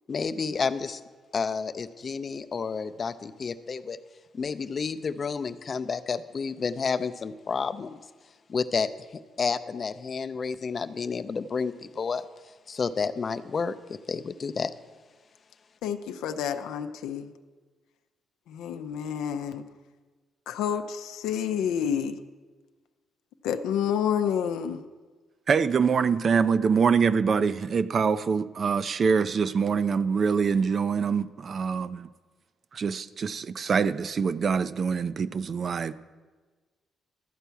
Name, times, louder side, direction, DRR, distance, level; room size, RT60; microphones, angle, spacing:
voice 1, 0.1-1.0 1.3-4.0 4.3-8.0 8.5-8.9 9.4-12.2 12.7-13.7 14.1-14.7, left 5 dB, 40° left, 0.5 m, -30 dB
voice 2, 15.8-17.3 18.5-19.6 20.5-22.2 23.4-24.8, left 8 dB, 90° left, 0.5 m, -29 dB
voice 3, 25.5-32.1 32.7-35.9, right 6 dB, 45° right, 0.4 m, -25 dB
12.5 x 4.5 x 8.2 m
cardioid pair, 90°, 0 cm